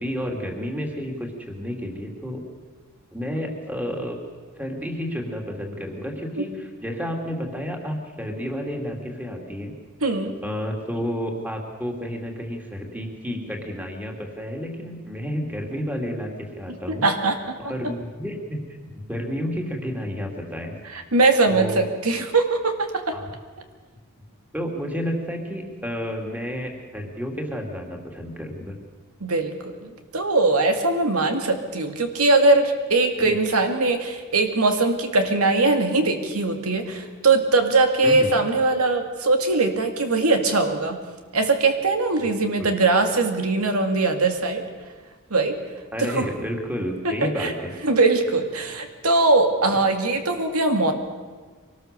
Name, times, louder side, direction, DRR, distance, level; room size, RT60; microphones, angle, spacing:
voice 1, 0.0-2.4 3.1-4.2 4.6-9.7 10.4-17.1 17.6-18.6 18.9-20.8 21.5-21.9 23.1-23.3 24.5-28.7 33.2-33.3 38.0-38.3 42.2-42.3 42.6-42.8 45.9-47.7, equal, 5° right, 1 dB, 2.8 m, -31 dB
voice 2, 10.0-10.4 16.9-17.6 20.9-23.2 29.2-41.0 41.3-44.6 45.3-45.6 46.0-46.3 47.0-47.5 47.8-50.9, right 3 dB, 85° right, 5 dB, 2.2 m, -21 dB
24.0 x 19.0 x 6.9 m, 1.4 s
head